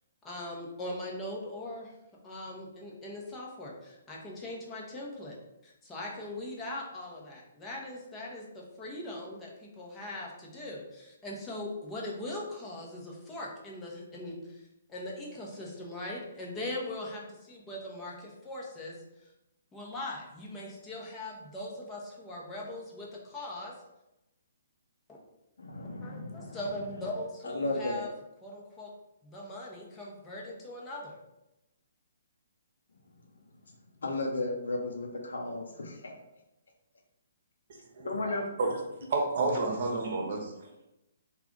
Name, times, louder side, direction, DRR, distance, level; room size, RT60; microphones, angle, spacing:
voice 1, 0.2-1.9 2.2-5.4 5.6-14.6 14.9-19.0 19.7-23.7 25.1-25.2 26.0-28.1 28.4-28.9 29.2-31.2, left 1 dB, 15° left, -4 dB, 0.9 m, -40 dB
voice 2, 25.6-26.6 27.4-28.1 34.0-36.1 38.0-38.7, left 2 dB, 75° left, 1 dB, 0.8 m, -34 dB
voice 3, 38.0-38.7 39.1-40.5, right 3 dB, 50° right, 1 dB, 0.9 m, -30 dB
3.4 x 2.4 x 3.8 m, 0.91 s
hypercardioid pair, 140°, 0 cm